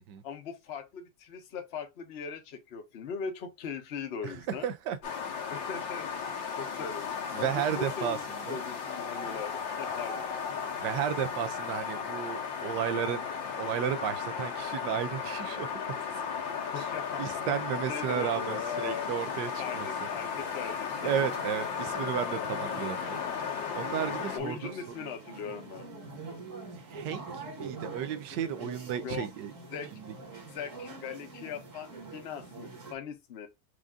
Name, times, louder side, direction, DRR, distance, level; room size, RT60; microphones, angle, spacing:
voice 1, 0.2-4.7 5.5-6.1 6.5-8.2 8.5-10.2 16.7-19.1 19.6-21.1 24.3-25.9 29.0-29.3 29.7-29.9 30.5-33.5, left 6 dB, 45° left, 0.9 m, -40 dB
voice 2, 4.6-5.0 7.3-8.2 8.5-8.6 10.8-13.3 13.6-15.7 17.2-19.9 21.0-23.2 23.8-24.7 26.8-29.5 29.9-30.1, right 9 dB, 75° right, 1.2 m, -33 dB
sound 1, 5.0-24.4, left 6 dB, 80° left, 1.8 m, -35 dB
sound 2, 21.0-32.9, right 3 dB, 45° right, 1.8 m, -45 dB
4.9 x 2.6 x 3.5 m
omnidirectional pair, 2.0 m